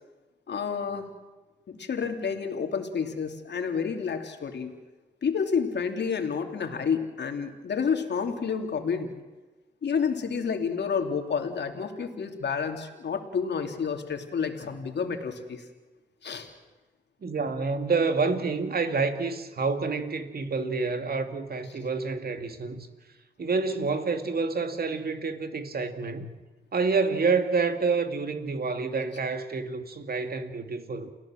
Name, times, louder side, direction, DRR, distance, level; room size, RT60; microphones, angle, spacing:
voice 1, 0.5-1.0 1.7-4.7 5.2-9.1 9.8-15.6 16.2-16.5, left 6 dB, 70° left, 3.0 m, -29 dB
voice 2, 17.2-22.9 23.4-26.3 26.7-31.1, right 4 dB, 55° right, 2.5 m, -28 dB
29.0 x 16.5 x 7.7 m
supercardioid pair, 45°, 19 cm